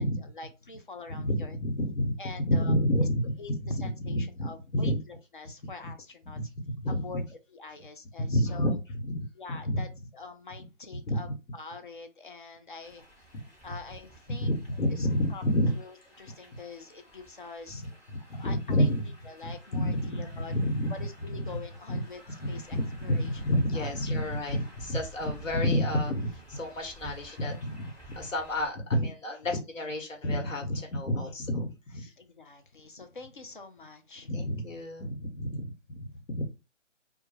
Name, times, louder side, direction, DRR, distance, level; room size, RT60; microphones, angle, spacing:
voice 1, 0.4-1.6 2.2-3.1 3.4-6.4 7.0-7.2 7.5-8.8 9.4-9.9 10.1-11.3 11.5-13.0 13.6-14.5 14.9-15.4 15.8-17.8 18.2-18.9 19.3-20.5 20.9-22.2 22.5-23.4 23.7-24.1 32.2-34.3, left 4 dB, 45° left, 7 dB, 0.4 m, -45 dB
voice 2, 1.2-3.3 3.7-5.0 5.6-5.9 6.4-7.2 8.2-8.7 9.0-9.2 9.5-9.8 11.0-11.2 14.3-15.7 18.3-19.0 19.4-20.9 21.4-21.6 21.9-22.0 22.4-32.1 34.3-36.0 36.3-36.5, equal, 85° left, 3 dB, 1.1 m, -29 dB
sound 1, 12.8-28.7, right 1 dB, 15° left, 1.2 m, -52 dB
2.3 x 2.2 x 3.1 m, 0.28 s
figure-of-eight pair, 155°, 38 cm